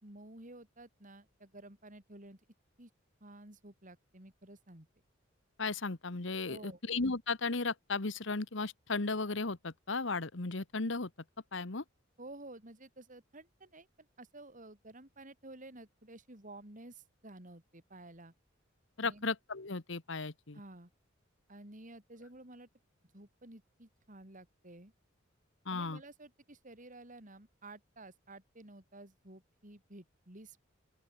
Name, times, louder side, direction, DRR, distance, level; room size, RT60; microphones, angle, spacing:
voice 1, 0.0-2.4 2.8-2.9 3.2-4.9 6.5-6.8 12.2-18.3 19.0-19.3 20.5-20.9 21.5-22.7 23.1-24.9 25.7-30.6, right 2 dB, 40° right, 4.1 m, -52 dB
voice 2, 5.6-11.1 11.5-11.8 19.0-20.6 25.6-26.0, left 3 dB, 65° left, 1.4 m, -35 dB
open air
head